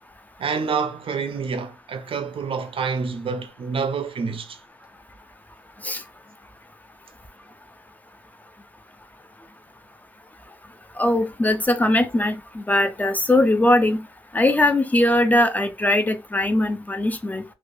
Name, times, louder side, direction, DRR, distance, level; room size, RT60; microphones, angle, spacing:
voice 1, 0.4-4.6, right 5 dB, 60° right, 0.5 m, -27 dB
voice 2, 11.0-14.0 14.3-17.4, left 1 dB, 15° left, 0.3 m, -20 dB
3.2 x 2.1 x 2.5 m
wide cardioid pair, 145°, 10 cm